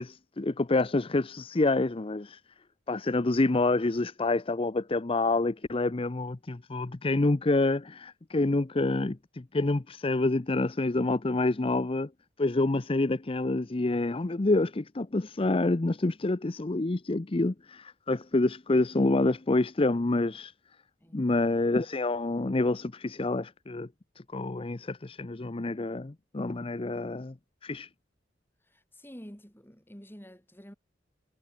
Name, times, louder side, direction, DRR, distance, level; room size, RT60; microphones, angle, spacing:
voice 1, 0.0-2.4 2.9-12.1 12.4-20.5 21.1-23.9 24.3-27.3 27.6-27.9, left 2 dB, 30° left, 0.6 m, -27 dB
voice 2, 21.0-21.3 28.7-30.7, equal, 10° left, 5.2 m, -49 dB
head